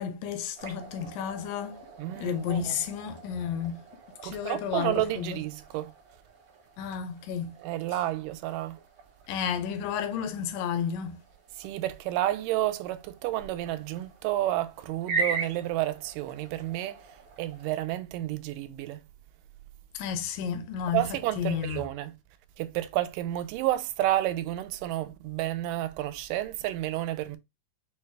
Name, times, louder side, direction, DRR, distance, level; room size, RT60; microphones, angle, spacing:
voice 1, 0.0-1.8 2.2-3.8 4.2-5.4 6.8-7.6 9.3-11.2 20.0-21.1 21.4-21.8, left 8 dB, 80° left, 2.3 m, -32 dB
sound 1, 0.5-17.7, right 3 dB, 55° right, 1.3 m, -41 dB
voice 2, 2.0-2.7 4.2-5.9 7.6-8.8 11.6-17.0 17.4-19.0 20.9-22.2 22.6-27.4, right 14 dB, 85° right, 2.1 m, -30 dB
6.4 x 2.2 x 3.1 m
omnidirectional pair, 3.9 m